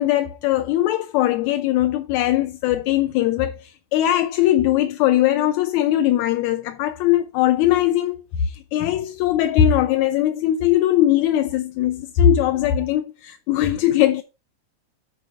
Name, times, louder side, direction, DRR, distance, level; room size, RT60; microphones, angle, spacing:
voice 1, 0.0-14.2, left 12 dB, 80° left, 1.8 m, -20 dB
9.2 x 4.5 x 4.9 m
omnidirectional pair, 3.5 m